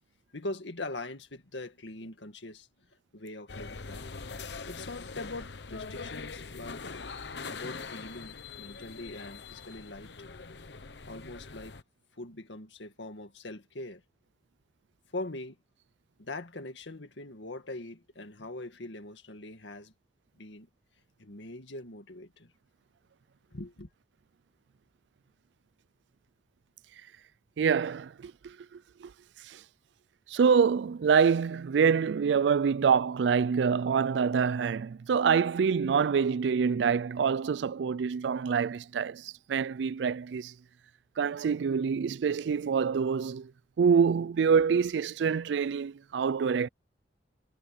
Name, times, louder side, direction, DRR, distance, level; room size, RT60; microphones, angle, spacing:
voice 1, 0.3-2.7 3.1-4.0 4.7-6.8 7.5-10.1 11.0-11.8 12.1-14.0 15.1-15.6 16.2-19.9 20.4-20.7 21.2-22.5 23.5-23.9, left 2 dB, 90° left, 2.0 m, -42 dB
sound 1, 3.5-11.8, left 4 dB, 70° left, 1.0 m, -42 dB
voice 2, 27.6-28.6 29.0-29.1 29.5-29.6 30.3-40.5 41.2-43.5 43.8-46.7, right 6 dB, 75° right, 0.4 m, -26 dB
head